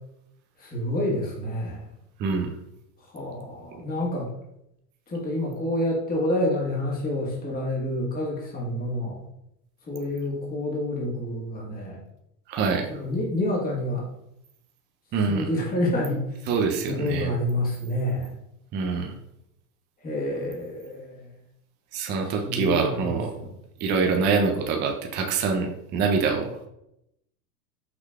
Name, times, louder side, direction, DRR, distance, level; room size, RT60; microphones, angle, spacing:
voice 1, 0.6-1.9 3.0-4.3 5.1-9.2 9.8-12.0 12.9-14.1 15.3-16.5 16.9-18.3 20.0-21.3 22.2-23.5, left 1 dB, 15° left, -4 dB, 1.3 m, -28 dB
voice 2, 2.2-2.5 12.5-12.9 15.1-15.5 16.5-17.3 18.7-19.1 21.9-23.3 23.8-26.5, right 5 dB, 25° right, 2 dB, 0.4 m, -25 dB
5.8 x 3.1 x 2.2 m, 0.80 s
hypercardioid pair, 105°, 50 cm